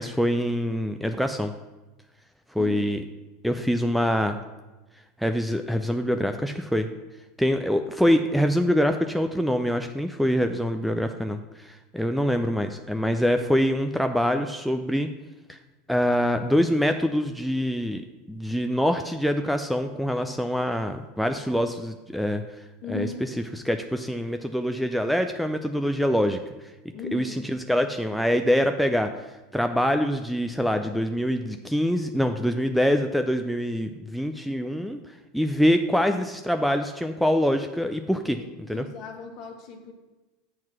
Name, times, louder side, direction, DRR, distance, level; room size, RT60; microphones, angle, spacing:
voice 1, 0.0-1.5 2.5-3.0 3.4-4.4 5.2-6.9 7.4-15.1 15.5-15.6 15.9-18.0 18.3-22.4 22.9-26.7 27.1-29.1 29.5-35.0 35.3-38.4 38.7-38.9, equal, ahead, 6 dB, 0.5 m, -25 dB
voice 2, 22.8-23.2 26.9-27.4 38.4-38.5 38.7-39.9, left 3 dB, 45° left, 3 dB, 1.5 m, -36 dB
7.7 x 4.5 x 5.9 m, 1.1 s
figure-of-eight pair, 80°, 0 cm